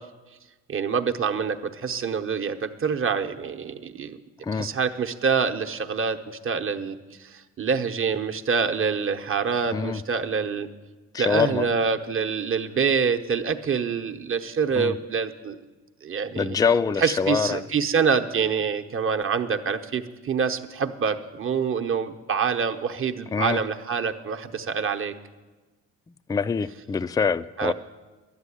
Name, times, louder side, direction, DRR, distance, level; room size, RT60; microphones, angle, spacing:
voice 1, 0.7-4.2 4.5-10.7 11.2-15.6 16.0-16.6 17.0-25.1 27.6-27.7, right 6 dB, 45° right, 0.9 m, -26 dB
voice 2, 11.1-11.7 14.8-14.9 16.4-17.6 23.3-23.6 26.3-27.7, left 6 dB, 15° left, 0.3 m, -24 dB
11.5 x 7.9 x 9.9 m
cardioid pair, 90°, 30 cm